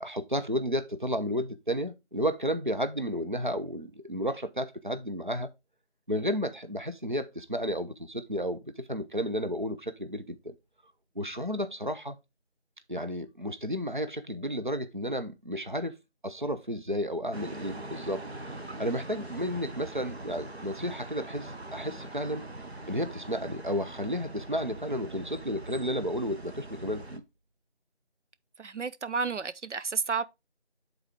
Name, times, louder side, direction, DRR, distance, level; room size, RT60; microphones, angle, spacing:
voice 1, 0.0-5.5 6.1-10.5 11.2-12.2 12.9-15.9 16.2-18.2 18.8-22.4 22.9-27.2, equal, 45° right, 0.6 m, -32 dB
sound 1, 17.3-27.2, right 2 dB, 65° right, 1.1 m, -42 dB
voice 2, 28.6-30.2, right 5 dB, 90° right, 0.7 m, -31 dB
9.1 x 4.0 x 3.5 m
figure-of-eight pair, 175°, 35 cm